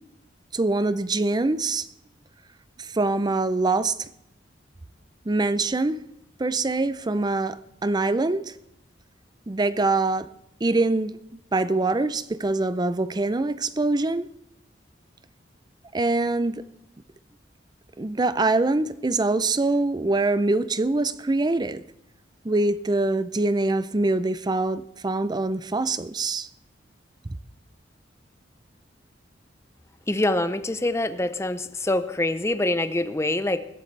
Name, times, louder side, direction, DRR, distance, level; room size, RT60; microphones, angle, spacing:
voice 1, 0.5-1.9 2.8-4.1 5.3-6.0 6.4-8.5 9.5-10.3 10.6-11.2 11.5-14.3 15.9-16.6 18.0-21.8 22.4-26.5, right 2 dB, 20° right, 0.5 m, -24 dB
voice 2, 30.1-33.6, left 1 dB, 15° left, 0.7 m, -25 dB
21.0 x 12.0 x 3.3 m
head